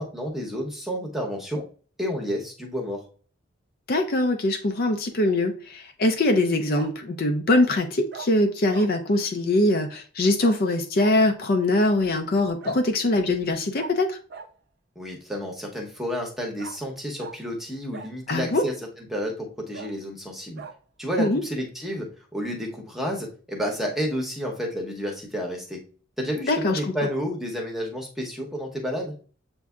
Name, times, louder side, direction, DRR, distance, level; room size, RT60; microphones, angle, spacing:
voice 1, 0.0-1.6 2.0-3.0 15.0-20.6 21.0-25.8 26.2-29.2, equal, ahead, 0.8 m, -30 dB
voice 2, 3.9-14.2 18.3-18.6 21.2-21.4 26.5-26.8, left 2 dB, 45° left, 0.4 m, -22 dB
Bark, 5.0-5.4 6.7-6.9 7.5-7.7 8.1-8.3 8.7-8.9 10.4-10.6 10.9-11.1 12.6-12.8 13.7-13.9 14.3-14.5 16.6-16.8 17.2-17.4 17.9-18.5 19.1-19.2 19.7-19.9 20.6-20.7 21.1-21.3, right 5 dB, 50° right, 0.5 m, -40 dB
7.2 x 2.7 x 2.3 m
head